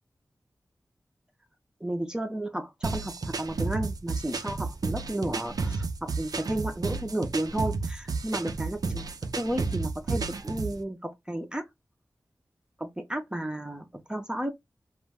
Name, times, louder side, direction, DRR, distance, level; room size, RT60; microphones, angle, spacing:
voice 1, 1.8-9.0 9.3-11.6 12.8-14.5, right 1 dB, 10° right, 0.5 m, -33 dB
sound 1, 2.8-10.8, right 4 dB, 70° right, 0.4 m, -32 dB
2.4 x 2.1 x 3.3 m
wide cardioid pair, 100°, 7 cm